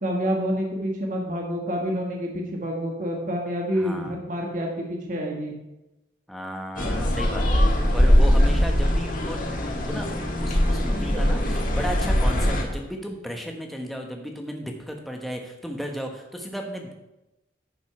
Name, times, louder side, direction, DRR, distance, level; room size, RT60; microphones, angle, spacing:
voice 1, 0.0-5.5, equal, 40° right, 0 dB, 1.5 m, -28 dB
voice 2, 3.7-4.2 6.3-9.4 9.8-16.9, equal, ahead, 2 dB, 1.1 m, -34 dB
sound 1, 6.8-12.6, equal, 45° left, 1.6 m, -21 dB
10.5 x 5.4 x 5.9 m, 0.96 s
head